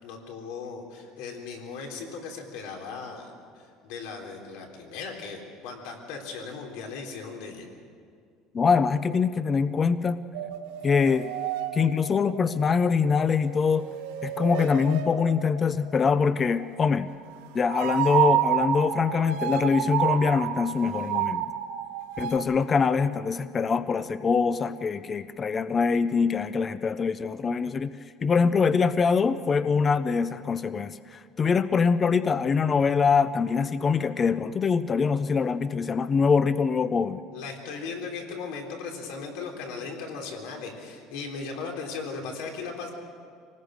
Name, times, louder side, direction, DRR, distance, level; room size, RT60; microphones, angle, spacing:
voice 1, 0.0-3.3 3.8-7.7 37.3-42.9, left 4 dB, 75° left, 2 dB, 3.8 m, -37 dB
voice 2, 8.5-10.2 10.8-11.3 11.7-13.9 14.2-17.1 17.5-21.5 22.2-28.0 28.2-37.2, left 5 dB, 20° left, 14 dB, 0.4 m, -24 dB
sound 1, 10.3-13.2 13.5-16.0 17.5-22.4, right 11 dB, 90° right, 1.5 m, -30 dB
25.0 x 19.0 x 6.5 m, 2.2 s
cardioid pair, 160°, 0 cm